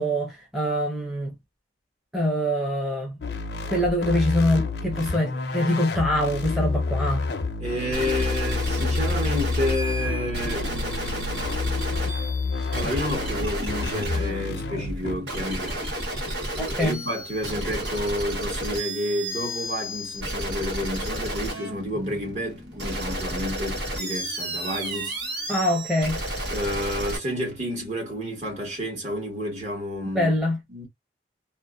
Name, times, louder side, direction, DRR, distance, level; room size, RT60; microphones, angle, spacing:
voice 1, 0.0-1.3 2.1-3.2 3.6-7.2 16.6-17.0 25.5-26.2 30.1-30.6, left 1 dB, ahead, 0.7 m, -24 dB
sound 1, 3.2-15.2, left 3 dB, 75° left, 0.5 m, -29 dB
voice 2, 7.6-11.4 12.7-15.9 16.7-25.1 26.5-30.3 30.7-30.9, equal, 40° right, 1.2 m, -30 dB
sound 2, 7.9-27.2, right 1 dB, 80° right, 1.3 m, -32 dB
2.6 x 2.1 x 2.3 m
head